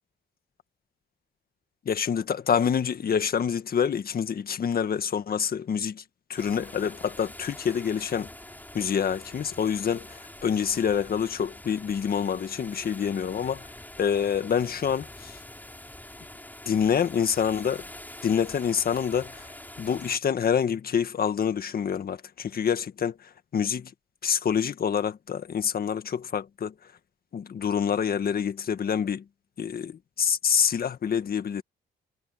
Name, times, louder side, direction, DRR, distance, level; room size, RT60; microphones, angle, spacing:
voice 1, 1.8-6.0 6.3-8.3 8.7-13.7 14.0-15.4 16.6-17.8 18.2-19.5 19.8-23.9 24.2-26.7 27.3-29.2 29.6-31.6, left 7 dB, 50° left, 1.7 m, -27 dB
sound 1, 6.4-20.2, left 1 dB, 10° left, 6.6 m, -45 dB
cardioid pair, 90°, 20 cm